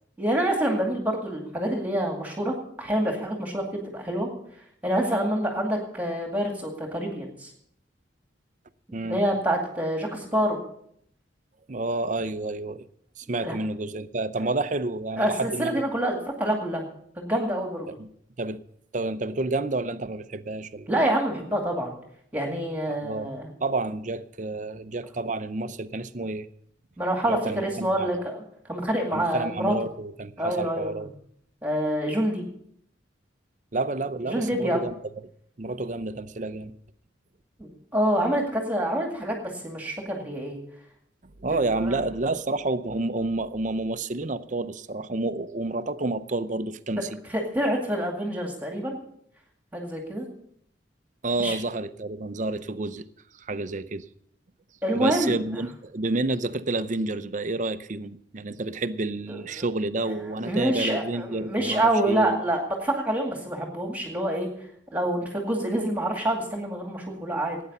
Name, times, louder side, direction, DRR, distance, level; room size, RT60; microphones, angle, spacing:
voice 1, 0.2-4.3 4.8-7.5 9.0-10.6 13.4-13.6 15.2-16.8 17.2-17.9 20.9-22.0 22.3-23.5 27.0-28.4 28.7-29.7 30.4-31.1 31.6-32.5 34.3-34.9 37.9-40.6 41.5-42.0 47.3-49.0 49.7-50.2 51.4-51.6 54.8-55.3 59.3-59.6 60.0-64.5 64.9-67.6, right 1 dB, 10° right, 1 dB, 2.2 m, -27 dB
voice 2, 11.7-12.9 13.2-15.7 17.9-18.1 18.4-18.6 18.9-20.9 22.9-23.3 23.6-26.5 27.3-28.1 29.1-31.1 33.7-34.9 35.6-36.7 41.4-47.2 51.2-53.1 53.4-54.1 54.9-62.4, right 2 dB, 40° right, 12 dB, 0.6 m, -29 dB
18.0 x 9.4 x 5.4 m, 0.68 s
head